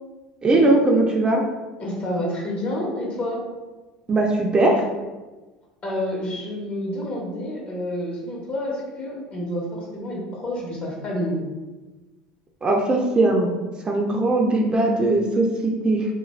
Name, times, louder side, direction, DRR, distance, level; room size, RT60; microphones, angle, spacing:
voice 1, 0.4-1.4 4.1-4.9 12.6-13.5 13.9-16.1, right 2 dB, 25° right, 0 dB, 0.4 m, -19 dB
voice 2, 1.8-3.4 5.8-11.4, left 1 dB, 40° left, -3 dB, 1.0 m, -29 dB
2.4 x 2.2 x 3.1 m, 1.2 s
hypercardioid pair, 80°, 3 cm